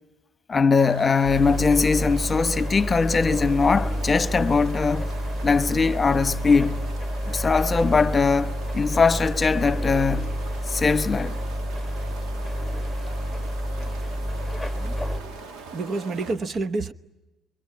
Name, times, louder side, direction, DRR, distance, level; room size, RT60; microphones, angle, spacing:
voice 1, 0.5-5.1 5.4-6.8 7.3-10.3 10.7-11.4, left 4 dB, 30° left, 1.1 m, -21 dB
sound 1, 0.8-16.4, right 4 dB, 75° right, 2.0 m, -42 dB
sound 2, 1.2-15.2, equal, 10° right, 4.3 m, -29 dB
voice 2, 15.7-16.9, right 3 dB, 45° right, 1.0 m, -28 dB
25.5 x 24.5 x 8.5 m
supercardioid pair, 75°, 0 cm